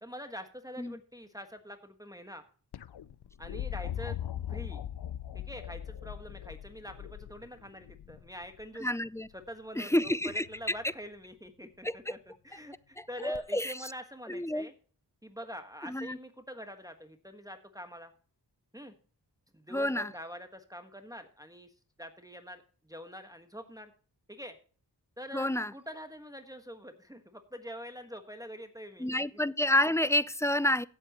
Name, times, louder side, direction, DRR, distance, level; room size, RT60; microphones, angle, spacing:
voice 1, 0.0-2.4 3.4-4.2 4.5-4.8 5.3-8.9 9.3-12.2 12.4-14.7 15.2-18.1 18.7-18.9 19.5-21.7 22.0-23.9 24.3-24.6 25.2-29.4, equal, 10° right, 1.5 m, -45 dB
sound 1, 2.7-8.7 10.3-10.8 13.3-13.4, left 10 dB, 65° left, 0.6 m, -40 dB
voice 2, 8.8-9.3 9.8-10.4 11.8-12.2 13.0-13.9 14.3-14.7 15.8-16.2 19.7-20.1 25.3-25.7 29.0-30.8, left 1 dB, 5° left, 0.5 m, -29 dB
16.5 x 7.8 x 3.0 m
wide cardioid pair, 55°, 42 cm